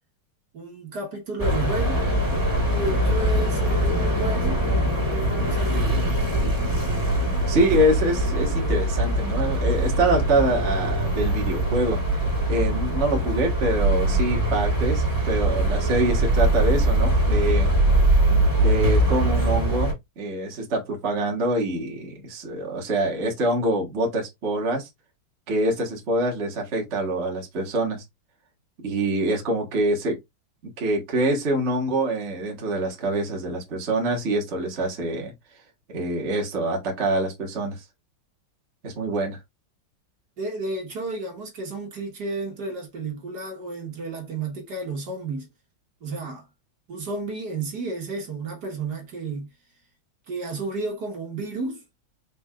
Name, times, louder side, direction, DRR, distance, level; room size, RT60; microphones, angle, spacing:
voice 1, 0.5-2.1 2.7-6.1 40.4-45.5 46.0-46.5 46.9-49.5 50.3-51.8, right 2 dB, 55° right, 1.8 m, -32 dB
sound 1, 1.4-19.9, right 1 dB, 10° right, 2.5 m, -22 dB
voice 2, 7.5-12.0 12.5-17.7 18.6-24.9 25.5-28.0 28.8-30.2 30.8-35.3 35.9-37.8 38.8-39.4, right 1 dB, 35° right, 1.4 m, -25 dB
5.2 x 3.9 x 2.3 m
omnidirectional pair, 2.3 m